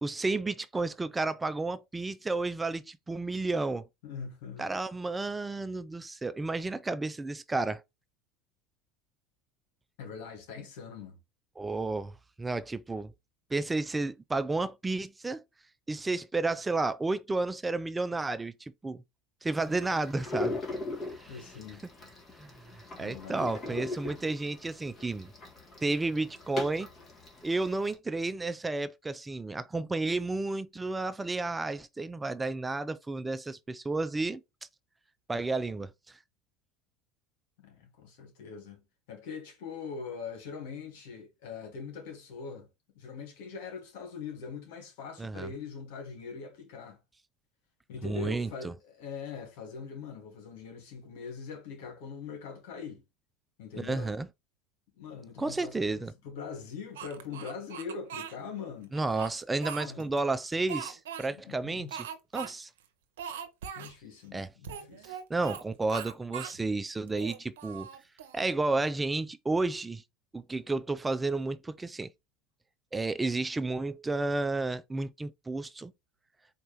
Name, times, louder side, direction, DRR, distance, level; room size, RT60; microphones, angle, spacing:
voice 1, 0.0-3.9 4.6-7.8 11.6-13.1 13.5-15.4 15.9-19.0 19.4-20.6 21.2-21.3 22.4-22.6 23.0-25.3 25.8-26.9 27.4-34.4 35.3-36.2 45.2-45.5 48.0-48.7 53.8-54.3 55.4-56.1 58.9-62.1 62.3-62.7 64.3-64.5 65.0-67.9 68.3-70.0 70.3-72.1 72.9-75.9, right 3 dB, 15° right, 0.3 m, -32 dB
voice 2, 4.0-4.7 10.0-11.2 21.3-21.8 23.0-23.8 37.6-38.8 39.1-42.7 43.0-47.0 47.9-53.0 53.6-54.2 54.9-59.0 59.8-60.1 61.3-61.9 63.8-65.2, left 5 dB, 70° left, 1.8 m, -42 dB
sound 1, 19.5-27.9, left 2 dB, 30° left, 1.6 m, -40 dB
Speech, 56.9-58.3 58.9-60.2 60.7-61.3 61.9-62.5 62.8-62.9 63.2-63.9 64.6-65.6 65.9-66.6 67.1-68.4, right 8 dB, 80° right, 0.7 m, -40 dB
4.3 x 2.8 x 3.4 m
hypercardioid pair, 90°, 0 cm